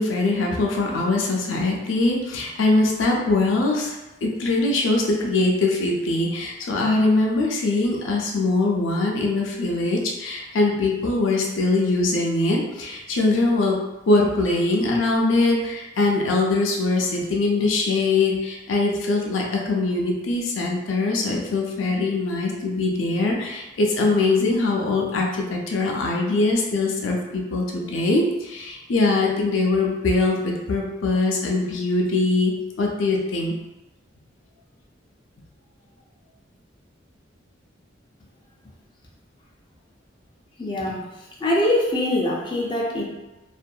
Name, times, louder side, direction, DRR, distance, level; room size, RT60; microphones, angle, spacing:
voice 1, 0.0-13.8 14.1-33.5, left 2 dB, 85° left, -1 dB, 0.5 m, -22 dB
voice 2, 40.6-41.0 41.4-43.0, left 1 dB, 25° left, -4 dB, 0.4 m, -23 dB
2.7 x 2.5 x 2.2 m, 1.0 s
head